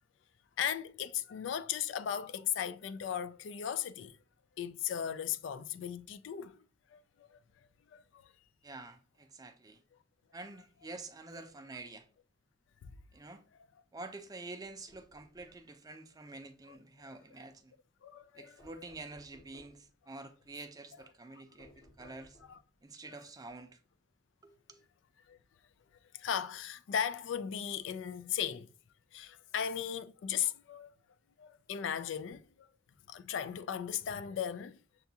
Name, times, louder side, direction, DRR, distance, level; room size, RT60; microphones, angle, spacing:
voice 1, 0.6-4.2 4.6-6.6 6.9-7.4 7.9-8.3 12.8-12.9 16.7-16.8 17.1-17.2 18.0-18.6 21.3-21.4 22.0-22.2 22.5-22.6 25.3-25.4 26.1-28.7 29.1-30.9 31.4-32.7 33.1-34.8, left 9 dB, 80° left, 0.3 m, -37 dB
voice 2, 8.6-9.8 10.3-12.1 13.1-13.4 13.9-17.7 18.3-22.4 22.8-23.8 24.4-24.8, right 3 dB, 20° right, 0.5 m, -48 dB
sound 1, 14.6-15.6 18.6-19.9 21.6-22.7, left 1 dB, 50° left, 1.2 m, -61 dB
6.8 x 2.3 x 2.7 m
head